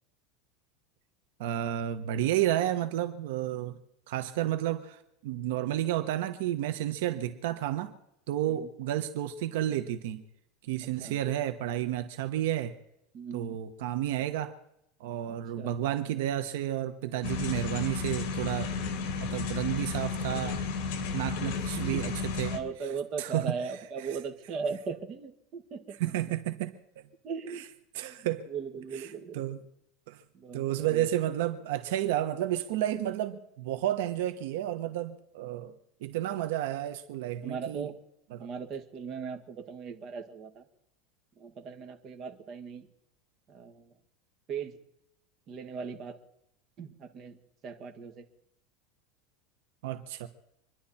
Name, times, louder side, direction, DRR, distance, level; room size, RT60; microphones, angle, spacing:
voice 1, 1.4-3.8 4.1-7.9 8.3-10.2 10.7-12.7 13.3-14.5 15.0-18.7 19.2-20.6 21.1-22.1 22.4-22.5 23.2-23.4 26.0-26.7 27.9-28.5 28.9-29.1 29.3-29.6 30.1-30.2 30.5-35.7 36.0-37.9 38.3-38.5 49.8-50.3, right 12 dB, 75° right, 9 dB, 1.2 m, -31 dB
voice 2, 10.8-11.2 13.1-13.6 15.3-15.8 21.8-22.2 22.4-26.3 27.2-27.7 28.0-29.6 30.3-31.1 37.4-38.0 38.4-40.6 41.4-42.9 43.5-43.9 44.5-44.8 45.5-46.2 46.8-47.4 47.6-48.2, right 5 dB, 35° right, 4 dB, 1.8 m, -38 dB
sound 1, 17.2-22.6, left 5 dB, 55° left, 2.4 m, -33 dB
26.0 x 11.5 x 4.4 m, 0.80 s
supercardioid pair, 155°, 0 cm